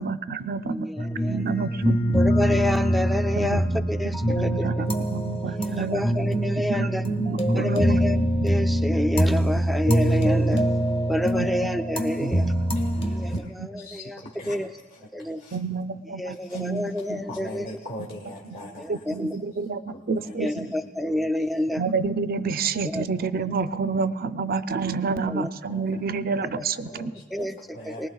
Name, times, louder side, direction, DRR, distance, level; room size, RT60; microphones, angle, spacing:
voice 1, 0.0-0.9 1.2-2.0 3.4-3.6 4.3-6.0 6.7-8.0 11.3-11.7 13.6-13.7 15.5-17.2 18.9-20.7 21.8-27.1, right 4 dB, 55° right, 11 dB, 0.5 m, -29 dB
voice 2, 0.7-1.6 2.1-4.2 4.4-4.9 5.5-7.0 7.6-10.6 11.1-12.5 13.0-14.7 15.1-15.4 16.2-17.7 18.8-19.3 20.3-21.8 22.9-23.0 25.3-25.5 26.6-27.0 27.3-27.5 27.8-28.1, left 1 dB, ahead, 6 dB, 0.4 m, -29 dB
sound 1, 1.0-13.4, right 1 dB, 30° left, 1.0 m, -24 dB
voice 3, 12.2-14.6 14.9-15.6 16.3-16.7 17.3-19.2 19.9-21.3 21.7-21.8 23.9-24.1 25.7-26.0 26.8-28.1, equal, 50° left, -3 dB, 1.4 m, -41 dB
23.5 x 19.5 x 2.3 m, 1.3 s
head